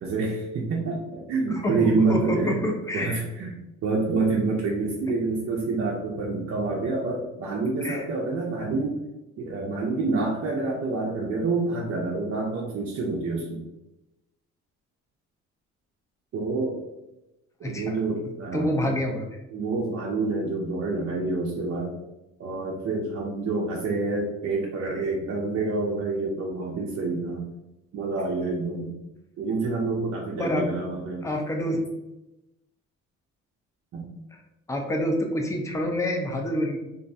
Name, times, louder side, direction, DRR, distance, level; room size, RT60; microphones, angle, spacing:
voice 1, 0.0-2.6 2.9-9.0 9.4-13.6 16.3-16.8 17.6-19.0 19.5-22.0 22.4-27.5 27.9-28.9 29.4-31.3 33.9-34.1, right 3 dB, 50° right, -2 dB, 0.5 m, -27 dB
voice 2, 1.6-3.2 7.8-8.0 17.6-18.0 18.5-19.3 30.4-30.7 31.2-31.9 34.7-36.8, equal, 10° left, 1 dB, 0.4 m, -27 dB
2.5 x 2.1 x 2.5 m, 0.96 s
cardioid pair, 90°, 30 cm